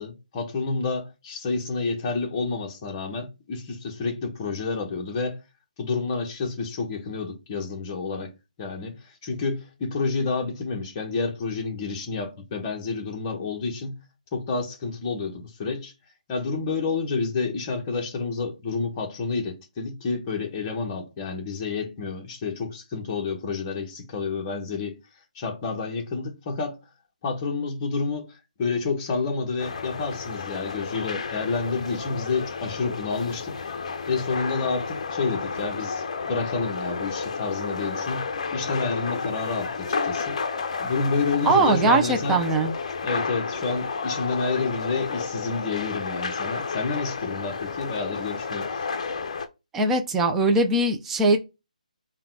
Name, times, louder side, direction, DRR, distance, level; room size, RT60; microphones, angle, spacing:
voice 1, 0.0-5.4 5.8-8.3 8.6-14.0 14.3-15.9 16.3-25.0 25.3-26.8 27.2-33.6 34.1-38.3 38.5-40.4 40.8-42.4 43.0-48.8, left 4 dB, 25° left, 0.9 m, -29 dB
sound 1, 29.6-49.5, left 5 dB, 50° left, 0.6 m, -31 dB
voice 2, 41.4-42.7 49.7-51.4, right 2 dB, 5° right, 0.4 m, -21 dB
3.8 x 2.2 x 4.5 m
hypercardioid pair, 160°, 4 cm